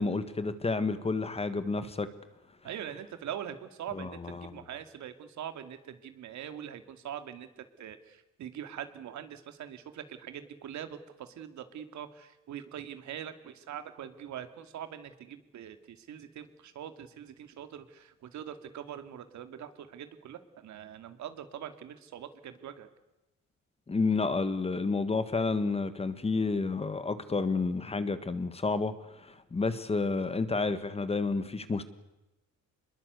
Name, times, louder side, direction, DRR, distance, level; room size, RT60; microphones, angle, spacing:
voice 1, 0.0-2.1 3.9-4.6 23.9-31.8, left 3 dB, 20° left, 12 dB, 1.4 m, -30 dB
voice 2, 2.6-22.9, right 9 dB, 65° right, 9 dB, 2.5 m, -43 dB
26.5 x 22.0 x 8.2 m, 0.96 s
cardioid pair, 145°, 31 cm